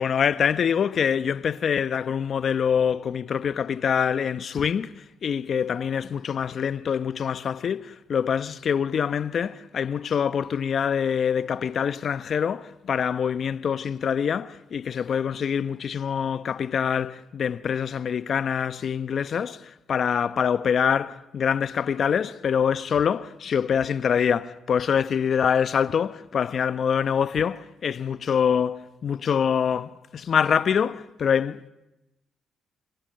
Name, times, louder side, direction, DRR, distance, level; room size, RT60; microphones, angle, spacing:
voice 1, 0.0-4.9 5.2-31.7, left 7 dB, 55° left, 0.9 m, -25 dB
26.5 x 26.5 x 7.7 m
cardioid pair, 90°, 0 cm